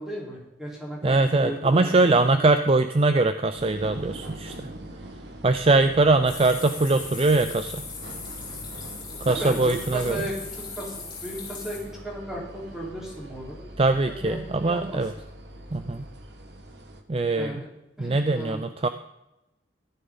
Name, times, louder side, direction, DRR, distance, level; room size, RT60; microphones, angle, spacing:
voice 1, 0.0-2.4 9.3-11.0 11.2-13.6 14.1-15.0 17.3-17.7 18.0-18.6, right 1 dB, 5° right, -5 dB, 4.3 m, -35 dB
voice 2, 1.0-4.7 5.4-7.8 9.2-10.2 13.8-15.1 15.7-16.1 17.1-17.6 18.0-18.9, right 2 dB, 30° right, 9 dB, 0.5 m, -22 dB
sound 1, 3.5-17.0, right 1 dB, 65° right, 1.4 m, -42 dB
sound 2, 6.3-11.8, left 5 dB, 25° left, 4.5 m, -39 dB
15.0 x 13.0 x 4.0 m, 0.92 s
head